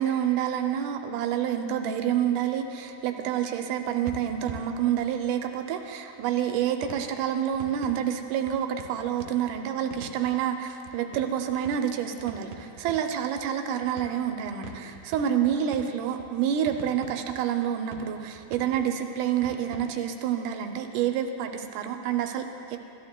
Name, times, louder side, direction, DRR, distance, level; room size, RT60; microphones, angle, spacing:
voice 1, 0.0-22.8, right 9 dB, 85° right, 5 dB, 2.1 m, -28 dB
sound 1, 2.9-3.0 4.1-5.7 6.8-20.2, right 4 dB, 65° right, 1.9 m, -45 dB
14.5 x 12.0 x 2.2 m, 2.6 s
omnidirectional pair, 3.5 m